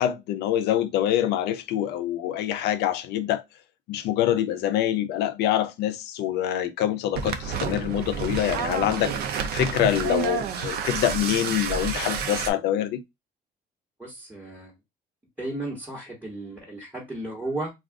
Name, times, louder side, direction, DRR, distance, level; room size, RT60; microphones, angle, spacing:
voice 1, 0.0-3.4 3.9-9.1 9.5-13.0, left 11 dB, 80° left, 0.5 m, -25 dB
sound 1, 7.1-12.5, right 7 dB, 70° right, 0.5 m, -29 dB
voice 2, 14.0-14.7 15.4-17.7, right 2 dB, 10° right, 1.3 m, -34 dB
2.4 x 2.4 x 3.5 m
cardioid pair, 110°, 17 cm